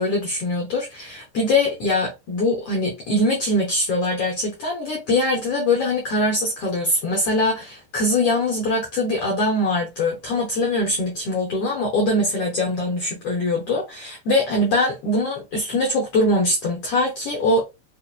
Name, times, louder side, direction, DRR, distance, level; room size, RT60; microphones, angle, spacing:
voice 1, 0.0-17.6, left 1 dB, 80° left, 1.3 m, -22 dB
5.7 x 2.4 x 2.2 m
omnidirectional pair, 4.0 m